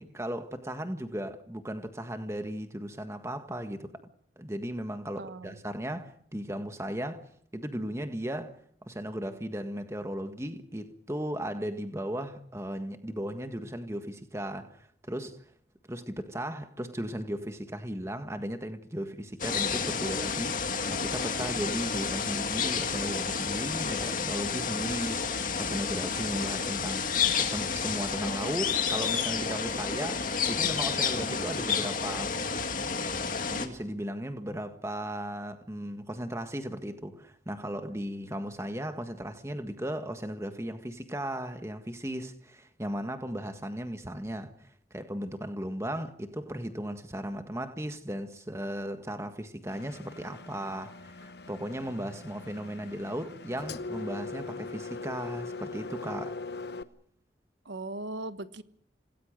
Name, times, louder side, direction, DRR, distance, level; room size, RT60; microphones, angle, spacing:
voice 1, 0.0-3.9 4.4-7.2 7.5-8.5 8.8-15.4 15.9-27.1 27.4-30.2 30.5-32.4 33.5-44.5 44.9-56.4, equal, 15° right, 1.6 m, -36 dB
voice 2, 5.2-5.6 57.6-58.6, right 2 dB, 85° right, 1.3 m, -38 dB
sound 1, 19.4-33.7, left 5 dB, 45° left, 2.1 m, -30 dB
Engine, 49.7-56.8, left 3 dB, 65° left, 0.9 m, -41 dB
27.0 x 18.5 x 6.5 m
head